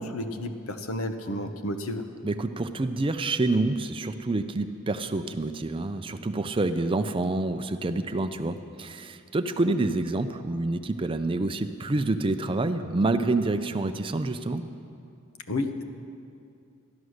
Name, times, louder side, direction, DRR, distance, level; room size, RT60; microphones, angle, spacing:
voice 1, 0.0-2.0 15.5-15.8, left 1 dB, 80° left, 7 dB, 0.9 m, -31 dB
voice 2, 2.2-14.6, right 2 dB, 25° right, 9 dB, 0.4 m, -27 dB
13.5 x 11.0 x 6.4 m, 2.5 s
head